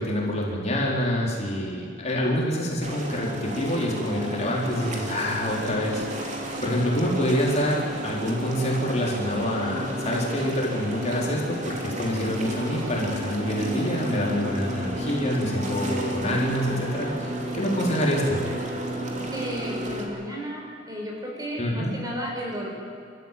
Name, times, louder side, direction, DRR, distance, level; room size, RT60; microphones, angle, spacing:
voice 1, 0.0-18.4 21.6-21.9, equal, 40° left, -2 dB, 4.4 m, -26 dB
sound 1, 2.8-20.1, equal, 40° right, 3.3 m, -32 dB
voice 2, 19.3-22.7, equal, 20° right, -2 dB, 6.1 m, -33 dB
29.5 x 14.5 x 9.3 m, 2.5 s
head